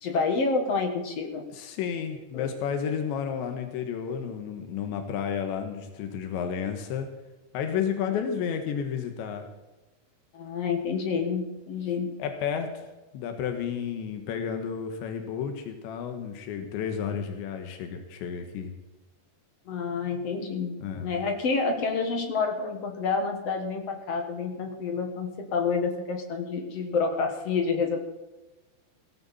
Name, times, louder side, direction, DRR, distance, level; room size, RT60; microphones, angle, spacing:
voice 1, 0.0-1.4 2.3-2.5 10.3-12.1 19.7-28.0, left 4 dB, 55° left, 5 dB, 1.8 m, -28 dB
voice 2, 1.5-7.1 7.5-9.5 12.2-12.9 13.1-18.7 20.8-21.2, left 7 dB, 90° left, 6 dB, 3.7 m, -32 dB
17.5 x 15.0 x 4.3 m, 1.1 s
omnidirectional pair, 5.0 m